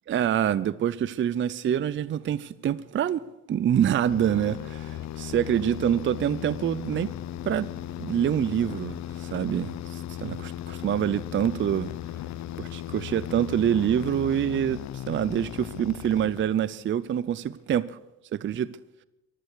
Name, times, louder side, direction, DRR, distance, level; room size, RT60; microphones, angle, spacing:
voice 1, 0.1-3.2 3.5-7.1 7.4-7.7 8.0-11.9 12.6-18.0 18.3-18.7, right 10 dB, 40° right, 0.5 m, -26 dB
sound 1, 4.0-16.8, left 12 dB, 65° left, 0.6 m, -37 dB
15.0 x 11.5 x 6.6 m
cardioid pair, 90°, 30 cm